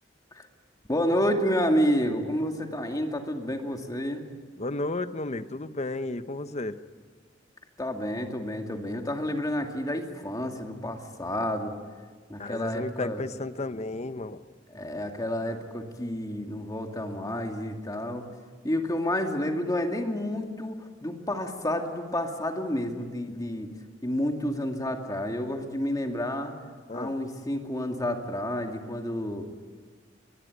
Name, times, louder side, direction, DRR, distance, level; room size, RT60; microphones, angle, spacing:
voice 1, 0.9-4.2 7.8-11.7 12.3-13.2 14.7-18.3 18.6-23.7 24.0-26.5 26.9-29.5, equal, 20° left, 3 dB, 2.4 m, -29 dB
voice 2, 4.6-6.8 12.4-14.4 26.9-27.2, left 2 dB, 35° left, 12 dB, 0.9 m, -33 dB
22.5 x 22.0 x 9.5 m, 1.5 s
head